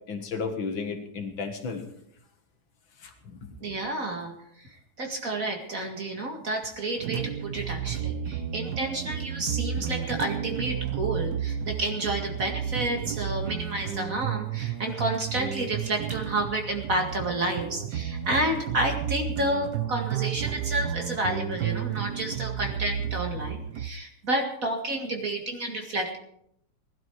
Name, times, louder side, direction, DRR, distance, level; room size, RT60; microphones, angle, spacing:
voice 1, 0.1-1.8 3.0-3.4, left 5 dB, 60° left, 5 dB, 2.2 m, -33 dB
voice 2, 3.6-4.7 5.0-26.2, right 1 dB, 40° right, 3 dB, 2.3 m, -30 dB
sound 1, 7.0-23.9, right 9 dB, 65° right, 1.1 m, -32 dB
19.0 x 12.5 x 4.8 m, 0.71 s
omnidirectional pair, 2.4 m